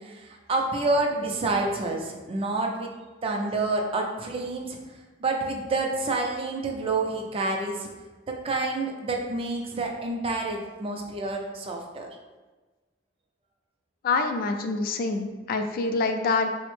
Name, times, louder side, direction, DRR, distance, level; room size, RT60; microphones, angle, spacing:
voice 1, 0.0-2.9 3.2-4.8 5.2-7.9 8.3-12.1, right 2 dB, 30° right, 1 dB, 0.4 m, -28 dB
voice 2, 14.0-16.5, left 3 dB, 50° left, 6 dB, 0.3 m, -26 dB
3.9 x 2.1 x 3.0 m, 1.3 s
head